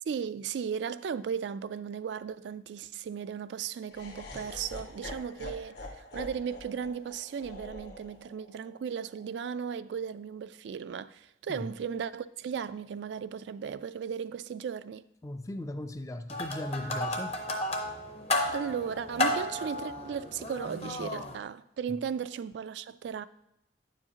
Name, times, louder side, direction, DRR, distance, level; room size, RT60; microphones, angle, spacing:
voice 1, 0.1-15.0 18.5-23.3, right 7 dB, 75° right, 0.3 m, -36 dB
Laughter, 3.9-10.0, left 1 dB, 65° left, 1.2 m, -46 dB
voice 2, 15.2-17.4 21.9-22.0, left 1 dB, 15° left, 0.3 m, -37 dB
sound 1, 16.3-21.4, left 1 dB, 35° left, 0.7 m, -33 dB
9.5 x 7.2 x 2.8 m
head